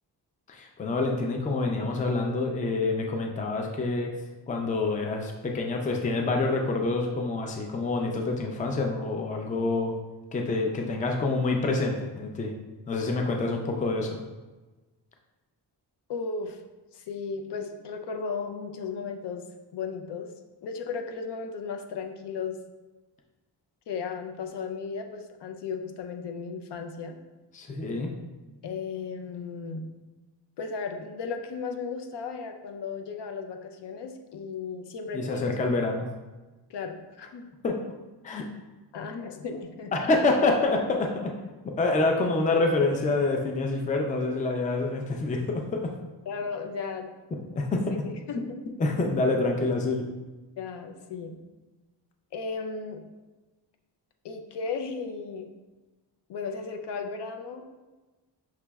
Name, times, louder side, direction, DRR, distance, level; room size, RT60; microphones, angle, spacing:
voice 1, 0.5-4.1 4.5-9.9 10.3-12.5 12.9-14.2 27.5-28.1 35.1-36.0 37.6-37.7 38.2-38.4 39.9-41.3 41.8-45.9 47.5-47.8 48.8-50.1, left 3 dB, 20° left, 2 dB, 0.4 m, -27 dB
voice 2, 16.1-16.6 16.9-19.4 19.7-20.3 20.6-22.6 23.9-27.2 28.6-29.9 30.6-35.5 36.7-37.5 38.9-39.9 44.2-44.3 46.3-47.1 48.0-48.6 50.6-51.4 52.3-53.0 54.2-55.5 56.3-57.7, left 5 dB, 70° left, 4 dB, 0.6 m, -35 dB
5.8 x 3.0 x 2.3 m, 1.2 s
wide cardioid pair, 140°, 42 cm